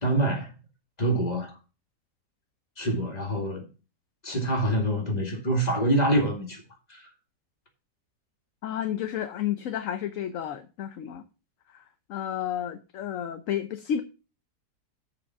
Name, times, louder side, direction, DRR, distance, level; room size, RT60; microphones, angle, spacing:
voice 1, 0.0-0.5 1.0-1.5 2.8-3.6 4.2-6.6 6.9-7.1, right 1 dB, 25° left, 2.1 m, -25 dB
voice 2, 8.6-11.2 11.7-11.8 12.1-14.0, left 10 dB, 60° left, 0.9 m, -31 dB
7.2 x 5.0 x 6.8 m
omnidirectional pair, 1.8 m